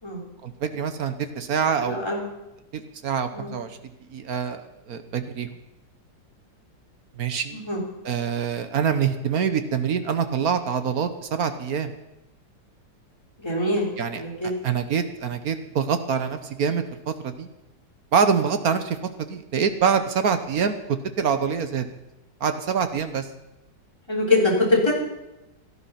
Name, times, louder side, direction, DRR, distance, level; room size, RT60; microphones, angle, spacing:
voice 1, 0.4-2.0 2.7-3.8 4.1-5.5 7.2-7.6 8.0-11.9 14.0-14.2 14.6-17.5 18.1-21.9 22.4-23.3, right 6 dB, 55° right, 9 dB, 1.4 m, -25 dB
voice 2, 1.8-2.2 3.3-3.5 7.5-7.8 13.4-14.5 24.1-24.9, left 2 dB, 15° left, -2 dB, 3.6 m, -23 dB
17.5 x 11.5 x 5.8 m, 0.95 s
omnidirectional pair, 2.0 m